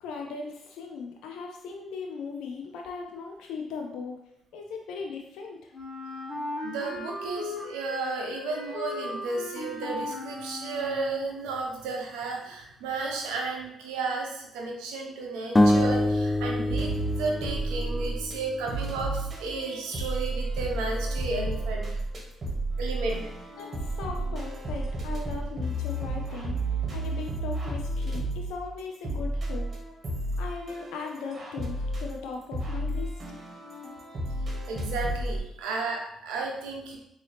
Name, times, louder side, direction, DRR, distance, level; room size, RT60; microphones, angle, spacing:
voice 1, 0.0-4.2 4.5-5.7 23.6-29.7 30.4-33.2, left 4 dB, 80° left, 2 dB, 0.4 m, -38 dB
Wind instrument woodwind instrument, 5.7-11.5, left 2 dB, 60° left, 0.9 m, -37 dB
voice 2, 6.6-16.9 17.2-21.9 22.8-23.2 34.7-37.0, right 3 dB, 90° right, 1 dB, 0.7 m, -33 dB
sound 1, 15.6-18.7, left 1 dB, 20° left, 0.4 m, -25 dB
sound 2, 16.7-18.4 18.7-35.4, right 1 dB, 45° right, 1.2 m, -32 dB
3.9 x 2.7 x 3.2 m, 0.77 s
supercardioid pair, 60°, 0 cm